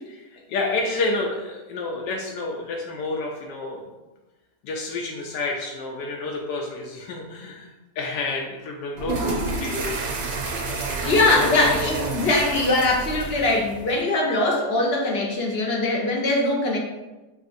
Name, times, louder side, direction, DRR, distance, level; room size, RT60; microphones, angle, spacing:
voice 1, 0.1-3.8 4.6-9.9 10.7-11.7, left 3 dB, 85° left, 0 dB, 1.2 m, -30 dB
sound 1, 8.9-14.0, right 3 dB, 85° right, 1.3 m, -29 dB
voice 2, 11.1-16.8, left 2 dB, 55° left, -2 dB, 0.7 m, -21 dB
6.0 x 2.6 x 2.5 m, 1.1 s
omnidirectional pair, 1.8 m